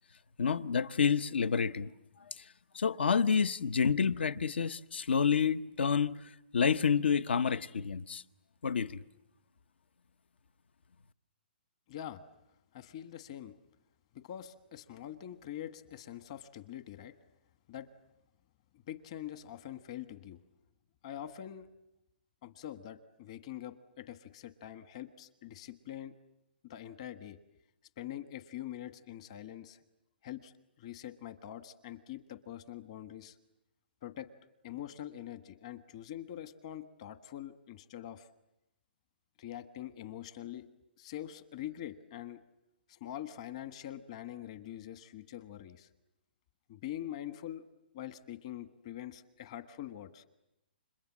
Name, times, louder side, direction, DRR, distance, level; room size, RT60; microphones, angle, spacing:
voice 1, 0.4-1.9 2.3-2.4 2.7-6.2 6.5-8.2 8.6-9.0, left 6 dB, 80° left, 1.0 m, -29 dB
voice 2, 11.9-12.2 12.7-13.5 14.1-17.1 17.7-17.9 18.9-20.4 21.0-21.7 22.4-26.1 26.6-27.4 28.0-29.8 30.2-30.5 30.8-33.4 34.0-34.3 34.6-38.3 39.4-40.7 41.0-42.4 42.9-45.9 46.7-47.6 47.9-50.3, left 11 dB, 35° left, 1.3 m, -44 dB
30.0 x 26.5 x 7.4 m
hypercardioid pair, 170°, 6 cm